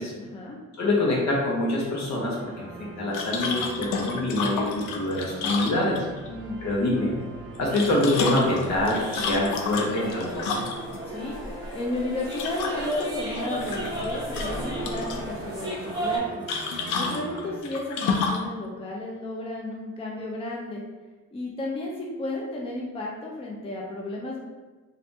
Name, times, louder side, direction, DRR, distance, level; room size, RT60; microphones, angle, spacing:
voice 1, 0.2-0.6 6.2-6.6 11.1-11.4 11.7-16.4 16.9-20.8 21.3-24.4, left 2 dB, 20° left, -2 dB, 0.5 m, -33 dB
voice 2, 0.8-2.7 3.0-6.0 6.6-7.1 7.6-10.7, left 1 dB, 65° left, -3 dB, 1.0 m, -25 dB
sound 1, 1.8-17.6, right 2 dB, 40° right, 0.7 m, -41 dB
sound 2, 3.1-6.3 7.5-11.0 12.3-13.0 13.4-14.1 14.3-15.2 16.5-18.5, left 4 dB, 85° left, 0.5 m, -30 dB
sound 3, 8.3-16.2, equal, 15° right, 1.3 m, -34 dB
3.2 x 2.6 x 2.7 m, 1.3 s
cardioid pair, 90°, 30 cm